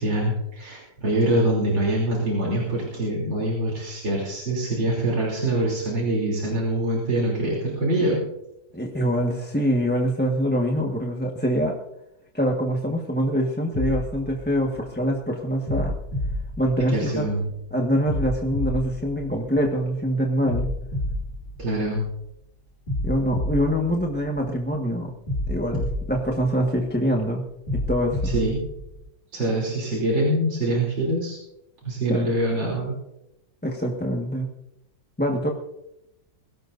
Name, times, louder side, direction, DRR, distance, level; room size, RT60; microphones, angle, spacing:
voice 1, 0.0-8.2 16.9-17.5 21.6-22.0 28.2-28.6 29.3-31.4 31.8-32.9, right 1 dB, 85° right, -4 dB, 4.1 m, -24 dB
voice 2, 8.7-11.8 12.3-15.9 16.6-17.3 17.7-20.7 23.0-25.1 25.5-27.5 27.7-28.3 32.1-32.3 33.6-34.5 35.2-35.5, equal, 5° left, -1 dB, 1.2 m, -24 dB
sound 1, 13.7-15.1 15.7-17.4 18.1-19.9 20.5-22.3 22.9-24.7 25.3-27.0 27.7-29.1, left 1 dB, 30° left, 2.7 m, -30 dB
22.5 x 17.0 x 2.6 m, 0.85 s
omnidirectional pair, 2.0 m